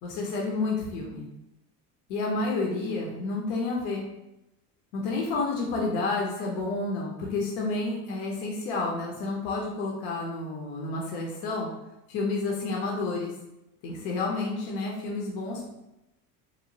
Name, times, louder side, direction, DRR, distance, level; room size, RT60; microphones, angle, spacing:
voice 1, 0.0-1.3 2.1-4.0 4.9-11.7 12.1-13.3 13.8-15.7, left 3 dB, 75° left, -2 dB, 0.6 m, -30 dB
2.9 x 2.0 x 2.6 m, 0.93 s
supercardioid pair, 95°, 39 cm